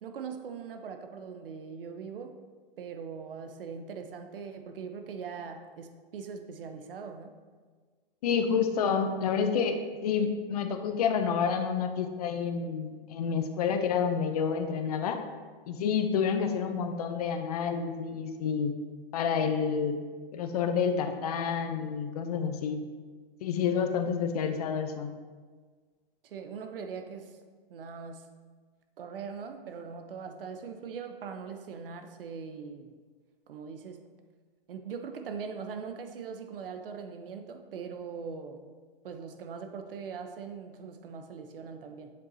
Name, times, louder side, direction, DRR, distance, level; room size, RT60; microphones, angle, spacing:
voice 1, 0.0-2.3 2.8-7.3 26.2-27.3 27.7-28.3 29.0-32.9 33.5-34.0 34.7-38.6 39.0-42.1, right 6 dB, 70° right, 6 dB, 0.8 m, -41 dB
voice 2, 8.2-15.2 15.7-18.7 19.1-20.0 20.3-22.8 23.4-25.1, left 6 dB, 40° left, 7 dB, 0.6 m, -29 dB
7.6 x 7.0 x 2.8 m, 1.5 s
hypercardioid pair, 160°, 29 cm